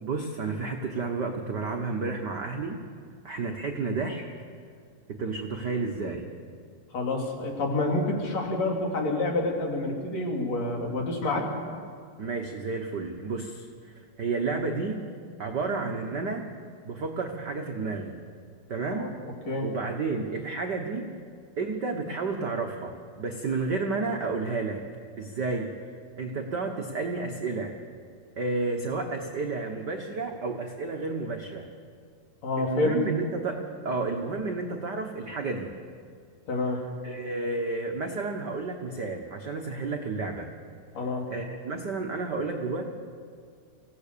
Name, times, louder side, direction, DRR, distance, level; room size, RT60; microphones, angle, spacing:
voice 1, 0.0-2.8 3.2-4.2 5.1-6.3 12.2-15.0 15.4-16.5 16.8-18.1 18.7-19.1 19.6-21.1 21.6-24.8 25.2-25.7 26.2-27.8 28.4-31.7 32.6-35.7 37.0-40.5 41.3-42.9, right 3 dB, 65° right, 3 dB, 1.0 m, -31 dB
voice 2, 6.9-11.5 18.9-19.1 19.5-19.7 32.4-33.0 36.5-36.8 41.0-41.3, left 2 dB, 55° left, 0 dB, 4.1 m, -28 dB
26.0 x 16.5 x 6.8 m, 2.1 s
omnidirectional pair, 3.8 m